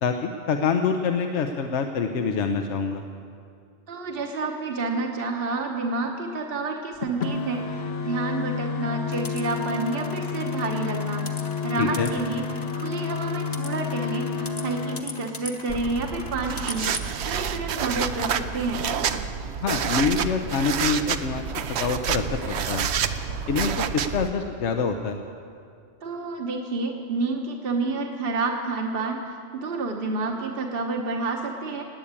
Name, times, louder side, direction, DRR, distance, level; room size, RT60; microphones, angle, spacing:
voice 1, 0.0-3.0 11.8-12.1 19.6-21.4 21.7-22.9 23.5-25.2, left 5 dB, 80° left, 5 dB, 1.1 m, -26 dB
voice 2, 3.9-16.9 17.2-18.8 26.0-29.2 29.5-31.8, right 3 dB, 55° right, 2 dB, 1.3 m, -29 dB
sound 1, 7.0-15.0, left 6 dB, 65° left, 1.2 m, -30 dB
sound 2, 9.1-17.1, left 2 dB, 20° left, 1.0 m, -41 dB
sound 3, 15.7-24.3, right 7 dB, 70° right, 0.9 m, -28 dB
19.0 x 8.4 x 8.8 m, 2.3 s
omnidirectional pair, 1.2 m